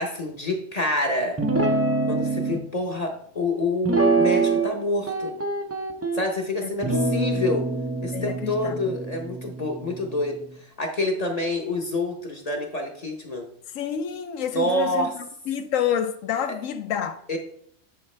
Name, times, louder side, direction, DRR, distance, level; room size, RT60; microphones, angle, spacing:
voice 1, 0.0-1.4 2.1-5.3 6.1-7.7 8.0-13.5 14.5-15.1 17.3-17.4, left 1 dB, 35° left, 0.8 m, -27 dB
Guitar, 1.4-2.6 3.8-4.8 5.1-6.2 6.8-10.3, right 3 dB, 25° right, 0.3 m, -25 dB
voice 2, 8.1-8.8 13.7-15.1 15.5-17.4, left 9 dB, 70° left, 1.0 m, -28 dB
9.3 x 4.6 x 3.3 m
omnidirectional pair, 1.4 m